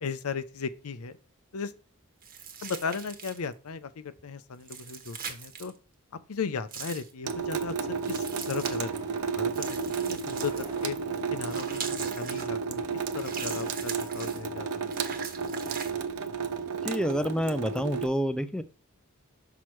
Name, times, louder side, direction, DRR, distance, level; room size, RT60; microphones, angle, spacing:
voice 1, 0.0-1.2 1.5-1.7 2.6-5.7 6.3-11.0 11.3-15.2, left 5 dB, 80° left, 0.6 m, -36 dB
sound 1, 2.2-3.5 4.6-5.7 6.7-7.1 8.0-8.8 9.5-10.9 11.4-12.5 13.1-14.4 14.9-15.9, right 6 dB, 40° right, 1.2 m, -40 dB
Water tap faucet / Sink (filling or washing) / Drip, 7.2-18.1, right 5 dB, 90° right, 0.7 m, -32 dB
sound 2, 8.8-9.6 10.2-11.4, right 2 dB, 20° right, 1.4 m, -52 dB
voice 2, 16.8-18.6, equal, 5° left, 0.4 m, -28 dB
6.1 x 5.7 x 3.1 m
head